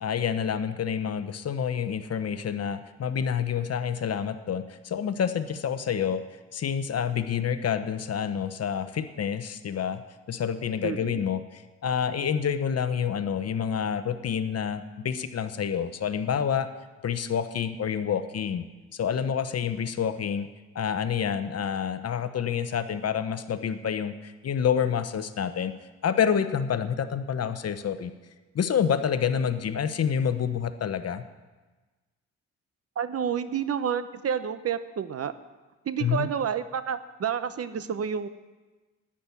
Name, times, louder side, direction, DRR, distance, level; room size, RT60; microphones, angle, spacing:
voice 1, 0.0-6.2 6.5-10.0 10.3-16.7 17.0-18.6 18.9-20.5 20.7-25.7 26.0-28.1 28.5-31.2 36.0-36.3, left 7 dB, 55° left, 11 dB, 0.9 m, -28 dB
voice 2, 10.8-11.2 33.0-35.3 35.8-38.3, right 8 dB, 55° right, 13 dB, 0.8 m, -29 dB
10.0 x 8.6 x 9.7 m, 1.3 s
cardioid pair, 80°, 29 cm